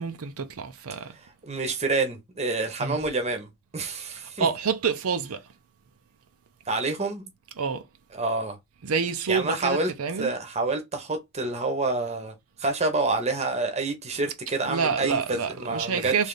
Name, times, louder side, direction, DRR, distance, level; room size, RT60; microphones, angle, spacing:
voice 1, 0.0-1.1 2.8-3.0 4.4-5.4 7.6-7.8 8.8-10.3 14.7-16.3, right 6 dB, 80° right, 0.6 m, -27 dB
voice 2, 1.2-4.5 6.7-7.3 8.1-8.6 9.3-16.3, right 3 dB, 30° right, 0.8 m, -28 dB
3.3 x 2.6 x 3.8 m
head